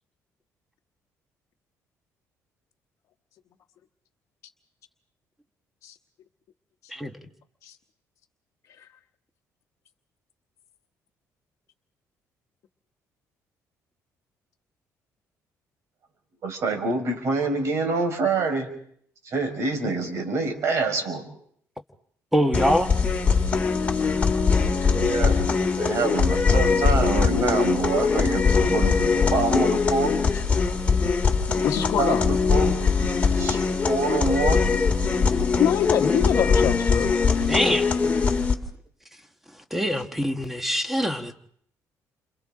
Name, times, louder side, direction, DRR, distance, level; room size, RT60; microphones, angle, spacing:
voice 1, 16.4-18.7 19.2-21.2 24.8-25.4 25.8-30.2 32.0-32.7 33.4-34.6, right 3 dB, 55° right, 4 dB, 5.2 m, -26 dB
voice 2, 22.3-22.9 37.5-37.8 39.7-41.3, equal, 5° right, 6 dB, 1.5 m, -24 dB
sound 1, 22.5-38.5, left 5 dB, 20° left, 2.1 m, -22 dB
voice 3, 31.6-32.2 35.6-37.1, left 10 dB, 60° left, 2 dB, 1.1 m, -24 dB
29.5 x 27.0 x 3.8 m, 0.64 s
cardioid pair, 140°, 6 cm